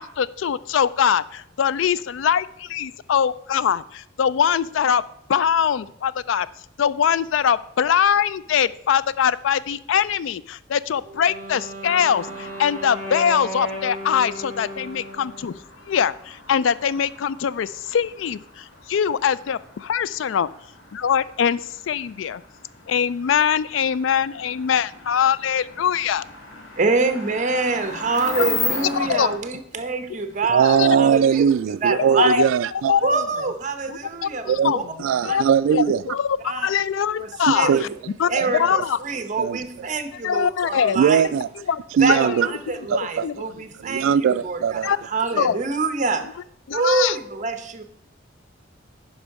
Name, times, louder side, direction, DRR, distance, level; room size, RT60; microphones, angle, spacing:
voice 1, 0.0-5.0 5.3-6.5 6.8-15.5 15.9-20.5 20.9-22.4 22.9-26.2 28.4-28.5 28.8-29.4 30.7-30.9 32.2-32.3 32.9-33.1 33.9-34.8 35.2-35.4 35.7-37.7 38.2-39.0 40.1-41.0 41.7-41.8 42.1-42.4 43.2-43.5 44.8-45.0 45.4-45.6 46.7-47.2, left 8 dB, 70° left, 0.4 m, -22 dB
Wind instrument woodwind instrument, 11.0-15.6, right 1 dB, 10° left, 2.4 m, -35 dB
sound 1, 11.8-29.4, left 3 dB, 90° left, 1.7 m, -37 dB
voice 2, 26.8-31.5 31.8-32.4 33.0-34.8 35.3-35.4 36.4-36.7 37.2-37.9 38.3-41.3 42.0-46.2 46.7-47.8, right 4 dB, 40° right, 0.9 m, -25 dB
voice 3, 30.5-32.9 34.5-34.7 35.0-36.0 37.5-37.8 38.3-38.5 39.4-39.6 41.0-41.5 42.0-42.5 42.9-43.3 43.8-44.9, right 7 dB, 75° right, 0.3 m, -20 dB
10.0 x 5.4 x 4.7 m
head